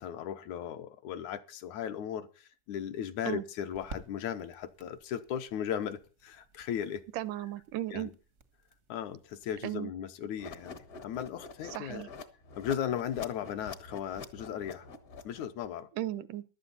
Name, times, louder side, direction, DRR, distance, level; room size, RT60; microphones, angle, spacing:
voice 1, 0.0-7.0 7.9-8.1 8.9-12.1 12.6-14.9 15.2-15.9, left 9 dB, 75° left, 2.1 m, -37 dB
sound 1, 1.6-9.6, right 4 dB, 55° right, 0.8 m, -54 dB
voice 2, 7.1-8.1 9.6-9.9 11.7-12.1 16.0-16.4, right 14 dB, 80° right, 2.2 m, -35 dB
sound 2, 10.4-15.7, left 4 dB, 50° left, 1.1 m, -46 dB
15.5 x 12.0 x 4.1 m
omnidirectional pair, 3.7 m